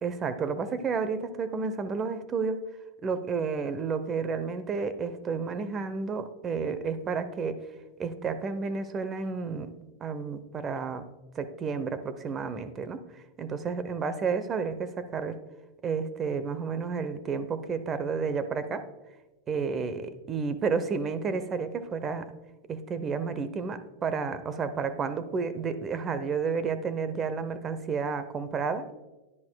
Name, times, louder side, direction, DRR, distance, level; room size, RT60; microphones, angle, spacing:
voice 1, 0.0-2.6 3.0-7.6 8.0-9.7 10.0-11.1 11.3-15.4 15.8-18.8 19.5-22.3 22.7-28.9, right 5 dB, 25° right, 12 dB, 0.7 m, -31 dB
11.0 x 10.5 x 2.2 m, 1.1 s
supercardioid pair, 135°, 0 cm